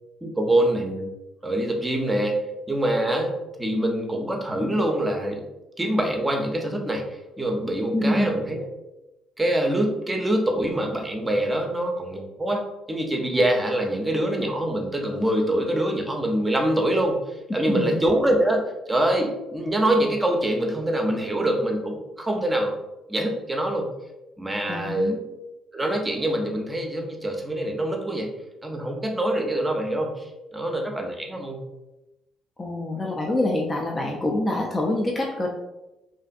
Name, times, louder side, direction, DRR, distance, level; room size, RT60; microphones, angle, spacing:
voice 1, 0.2-1.1 1.4-5.4 5.8-7.1 7.4-8.7 9.4-17.2 17.5-18.6 18.9-22.7 23.1-23.9 24.4-25.2 25.7-28.3 28.6-30.3 30.5-31.6, right 1 dB, 20° right, 2 dB, 0.6 m, -24 dB
voice 2, 7.9-8.3 17.5-18.0 24.7-25.2 32.6-35.5, left 1 dB, 30° left, -1 dB, 0.5 m, -25 dB
2.6 x 2.4 x 2.3 m, 0.98 s
hypercardioid pair, 50°, 0 cm